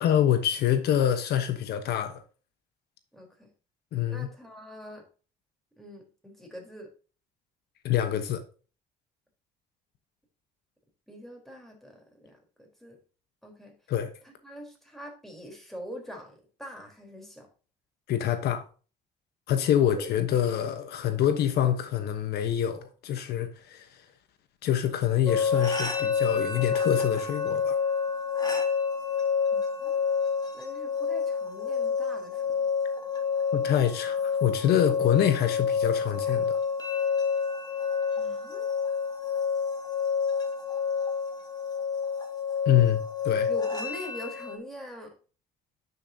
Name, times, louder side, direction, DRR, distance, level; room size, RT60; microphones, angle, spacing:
voice 1, 0.0-2.2 3.9-4.3 7.8-8.4 13.9-14.1 18.1-18.6 19.5-24.0 24.6-27.8 33.5-36.6 42.7-43.5, left 10 dB, 70° left, 1.1 m, -26 dB
voice 2, 3.1-3.5 4.1-5.1 5.8-6.9 11.1-13.0 13.4-13.7 14.2-17.5 20.0-20.1 29.5-30.0 30.5-32.6 38.2-38.7 43.5-45.1, equal, ahead, 3.9 m, -43 dB
sound 1, 25.3-44.6, left 6 dB, 25° left, 2.3 m, -28 dB
10.5 x 6.9 x 2.8 m
cardioid pair, 110°, 17 cm